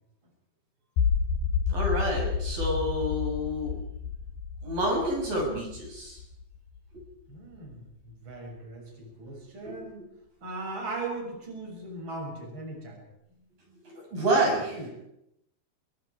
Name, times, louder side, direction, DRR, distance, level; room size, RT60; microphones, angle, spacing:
sound 1, 1.0-7.0, left 6 dB, 65° left, 6.9 m, -30 dB
voice 1, 1.7-3.8 4.6-6.2 6.9-7.0 9.6-9.8 13.8-14.8, right 1 dB, 55° right, -1 dB, 8.3 m, -28 dB
voice 2, 7.3-10.0 10.4-13.0 14.7-14.9, right 2 dB, 30° right, 0 dB, 7.6 m, -38 dB
29.5 x 25.0 x 4.8 m, 0.80 s
omnidirectional pair, 4.8 m